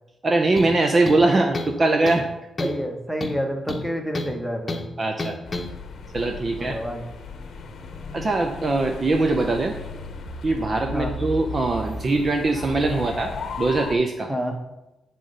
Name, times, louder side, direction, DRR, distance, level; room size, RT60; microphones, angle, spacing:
voice 1, 0.2-2.3 5.0-5.3 6.1-6.8 8.1-9.8 10.4-13.3 13.6-14.3, right 2 dB, 30° right, 5 dB, 0.6 m, -22 dB
sound 1, 0.6-0.8 1.1-1.8 2.1-2.3 2.6-2.8 3.2-4.4 4.7-4.9 5.2-5.7, left 2 dB, 25° left, 0.9 m, -30 dB
voice 2, 2.6-4.9 6.6-7.0 10.9-11.1 14.3-14.6, equal, ahead, 3 dB, 1.0 m, -28 dB
sound 2, 5.5-14.0, left 3 dB, 60° left, 0.9 m, -35 dB
9.4 x 3.8 x 5.4 m, 0.96 s
wide cardioid pair, 145°, 0 cm